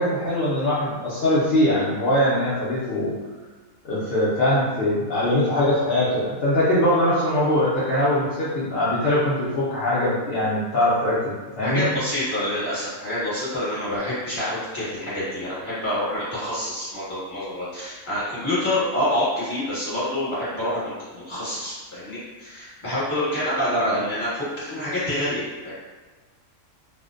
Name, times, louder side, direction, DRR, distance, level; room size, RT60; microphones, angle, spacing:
voice 1, 0.0-3.1 3.8-11.9, left 1 dB, 65° left, -9 dB, 0.6 m, -22 dB
voice 2, 11.6-25.7, left 1 dB, 20° left, -11 dB, 1.1 m, -27 dB
2.5 x 2.1 x 2.4 m, 1.3 s
omnidirectional pair, 1.5 m